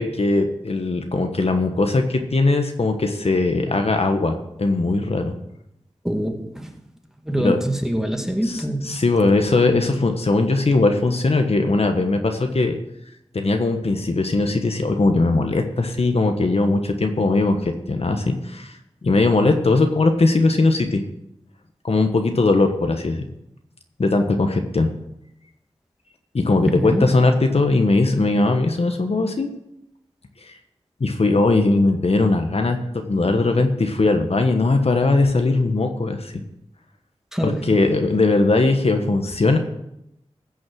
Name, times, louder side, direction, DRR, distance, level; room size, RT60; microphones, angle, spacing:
voice 1, 0.0-5.3 7.4-7.6 8.4-12.8 13.3-18.7 19.0-21.0 21.8-23.2 24.0-24.9 26.3-29.5 30.4-30.5 31.0-36.3 37.4-39.6, left 3 dB, 60° left, 5 dB, 1.2 m, -19 dB
voice 2, 6.0-6.7 7.3-9.0 26.7-27.1 37.3-37.7, right 1 dB, 5° right, 3 dB, 2.1 m, -24 dB
15.5 x 6.3 x 6.3 m, 0.82 s
cardioid pair, 45°, 11 cm